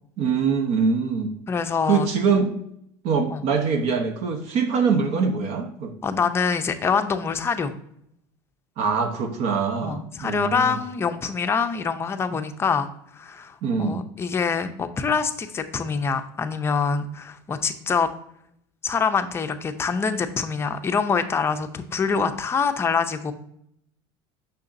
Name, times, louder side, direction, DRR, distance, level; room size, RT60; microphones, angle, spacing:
voice 1, 0.2-1.3 1.8-2.5 3.0-5.9 8.8-10.8 13.6-14.1, right 5 dB, 55° right, 5 dB, 0.9 m, -23 dB
voice 2, 1.5-2.1 3.3-3.4 6.0-7.7 9.8-12.9 13.1-18.1 18.8-23.3, left 5 dB, 20° left, 7 dB, 0.5 m, -25 dB
6.8 x 5.8 x 2.6 m, 0.71 s
cardioid pair, 140°, 13 cm